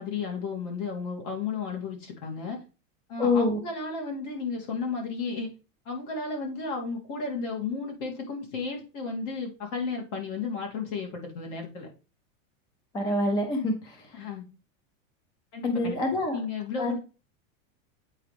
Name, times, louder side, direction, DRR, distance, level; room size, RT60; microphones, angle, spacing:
voice 1, 0.0-2.6 3.1-5.5 5.8-11.9 14.1-14.4 15.5-16.0 16.3-17.0, left 4 dB, 60° left, 0 dB, 2.9 m, -33 dB
voice 2, 3.2-3.6 12.9-14.0 15.6-16.4 16.8-17.0, left 2 dB, 10° left, 5 dB, 0.5 m, -26 dB
8.4 x 4.8 x 3.4 m, 0.34 s
supercardioid pair, 170°, 40 cm